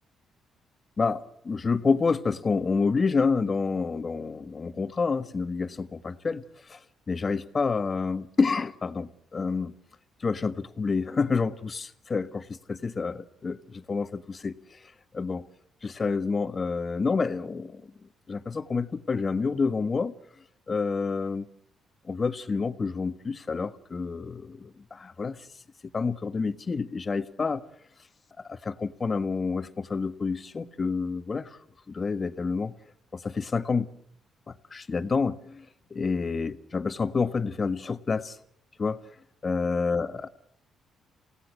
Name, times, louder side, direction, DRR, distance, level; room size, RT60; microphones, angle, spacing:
voice 1, 1.0-6.8 7.1-9.7 10.2-14.6 15.1-15.4 15.8-17.8 18.3-20.1 20.7-21.5 22.0-25.5 25.9-27.6 28.4-31.6 31.9-32.7 33.1-33.9 34.5-35.6 35.9-38.4 38.8-39.0 39.4-40.3, left 4 dB, 35° left, 1.5 m, -28 dB
29.0 x 17.5 x 7.6 m
cardioid pair, 90°, 0 cm